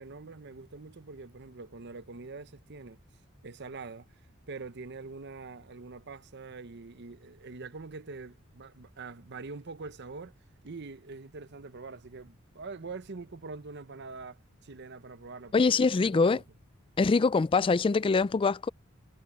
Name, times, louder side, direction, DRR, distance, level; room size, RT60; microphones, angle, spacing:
voice 1, 0.0-3.0 3.4-4.1 4.5-10.3 10.6-16.4, right 4 dB, 55° right, 0.8 m, -44 dB
voice 2, 15.5-16.4 17.0-18.7, left 4 dB, 25° left, 0.3 m, -24 dB
head